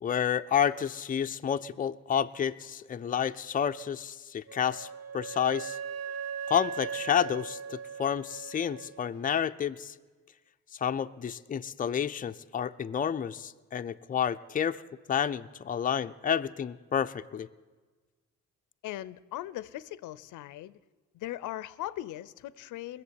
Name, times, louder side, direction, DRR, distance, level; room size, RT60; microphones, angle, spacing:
voice 1, 0.0-4.9 5.1-5.8 6.5-9.9 10.8-14.8 15.1-17.5, left 8 dB, 30° left, 0.5 m, -30 dB
Wind instrument woodwind instrument, 4.5-9.1, right 7 dB, 55° right, 0.9 m, -39 dB
voice 2, 18.8-20.8 21.1-23.0, left 14 dB, 80° left, 0.6 m, -39 dB
20.0 x 7.3 x 9.7 m
cardioid pair, 90°, 30 cm